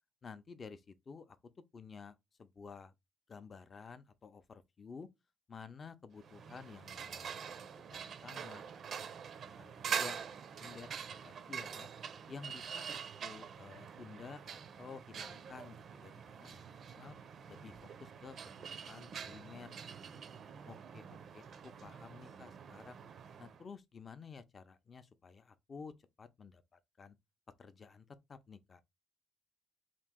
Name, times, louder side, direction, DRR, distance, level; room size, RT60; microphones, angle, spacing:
voice 1, 0.2-1.4 1.7-2.9 3.3-5.1 5.5-8.6 9.5-11.9 12.3-17.2 17.5-18.5 18.8-20.2 20.6-23.0 23.4-27.2 27.6-28.8, left 5 dB, 40° left, 0.5 m, -52 dB
sound 1, 6.2-23.6, right 7 dB, 60° right, 0.4 m, -45 dB
2.9 x 2.6 x 3.5 m
cardioid pair, 90°, 0 cm